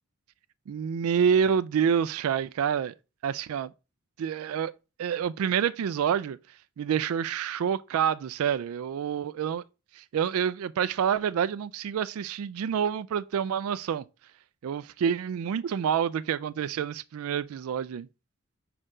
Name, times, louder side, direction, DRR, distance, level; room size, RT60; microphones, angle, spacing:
voice 1, 0.7-2.9 3.2-3.7 4.2-4.7 5.0-6.4 6.8-9.6 9.9-14.0 14.6-18.1, right 8 dB, 80° right, 0.3 m, -27 dB
5.0 x 4.4 x 4.9 m
head